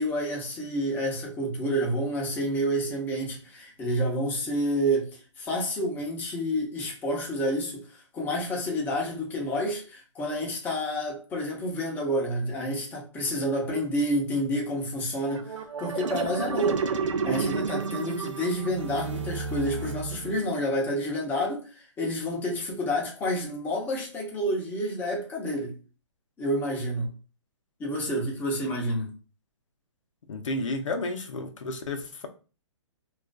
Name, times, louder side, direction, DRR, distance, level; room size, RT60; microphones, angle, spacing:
voice 1, 0.0-16.8 17.2-25.7 26.4-27.1 27.8-29.1, equal, 10° left, 0.6 m, -29 dB
sound 1, 15.2-20.6, right 5 dB, 75° right, 0.5 m, -31 dB
voice 2, 30.3-32.3, left 2 dB, 75° left, 0.6 m, -32 dB
2.4 x 2.3 x 2.2 m
hypercardioid pair, 145°, 16 cm